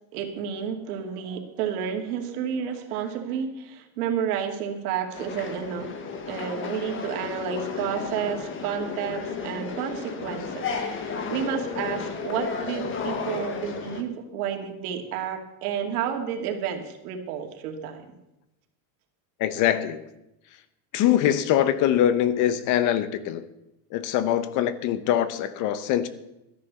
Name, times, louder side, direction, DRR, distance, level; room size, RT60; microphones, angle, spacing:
voice 1, 0.1-5.9 6.3-18.0, right 8 dB, 85° right, 2.6 m, -31 dB
sound 1, 5.1-14.0, left 5 dB, 30° left, 1.4 m, -33 dB
voice 2, 19.4-20.1 20.9-23.4 23.9-26.1, left 11 dB, 45° left, 0.9 m, -23 dB
13.5 x 10.5 x 7.0 m
cardioid pair, 165°, 43 cm